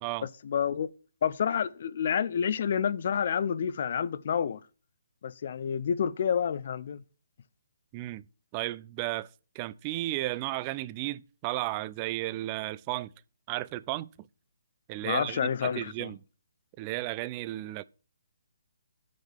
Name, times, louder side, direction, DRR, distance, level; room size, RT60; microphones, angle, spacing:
voice 1, 0.4-0.9 1.2-4.6 5.2-7.0 15.0-16.1, left 7 dB, 45° left, 0.6 m, -29 dB
voice 2, 7.9-8.2 8.5-9.3 9.5-13.1 13.5-14.1 14.9-16.2 16.8-17.8, right 17 dB, 25° right, 0.4 m, -34 dB
6.5 x 6.2 x 7.2 m
figure-of-eight pair, 135°, 0 cm